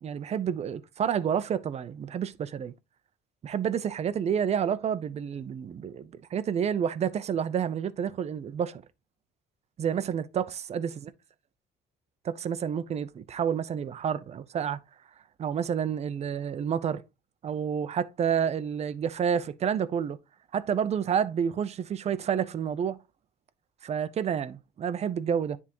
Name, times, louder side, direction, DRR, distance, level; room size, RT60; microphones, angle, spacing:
voice 1, 0.0-2.7 3.4-8.8 9.8-11.1 12.2-14.8 15.4-17.0 17.4-20.2 20.5-23.0 23.8-25.6, right 8 dB, 40° right, 0.6 m, -29 dB
9.7 x 3.6 x 3.0 m
cardioid pair, 110°, 17 cm